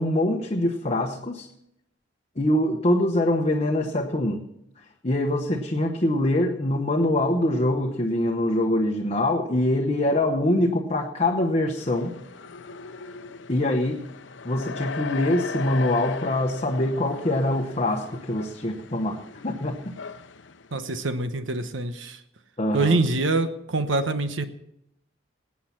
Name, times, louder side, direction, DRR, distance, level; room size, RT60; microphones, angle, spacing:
voice 1, 0.0-1.5 2.4-4.4 5.0-12.1 13.5-14.0 14.4-19.8 22.6-23.0, left 1 dB, 35° left, 2 dB, 1.0 m, -24 dB
sound 1, 11.8-20.7, left 4 dB, 75° left, 0.7 m, -38 dB
voice 2, 20.7-22.2 22.7-24.4, right 2 dB, 85° right, 10 dB, 1.1 m, -25 dB
19.5 x 8.5 x 5.8 m, 0.77 s
head